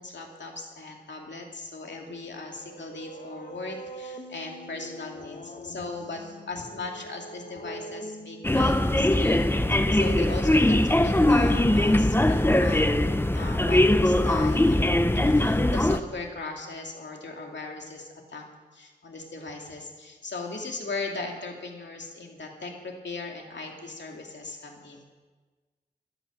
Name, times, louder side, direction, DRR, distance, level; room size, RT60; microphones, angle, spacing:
voice 1, 0.0-12.9 13.3-18.4 18.7-25.0, left 3 dB, 85° left, 1 dB, 2.5 m, -38 dB
sound 1, 2.2-10.0, right 1 dB, 55° left, 1.4 m, -44 dB
sound 2, 8.4-16.0, left 1 dB, 10° left, 0.7 m, -21 dB
14.0 x 12.0 x 6.4 m, 1.3 s
wide cardioid pair, 75°, 18 cm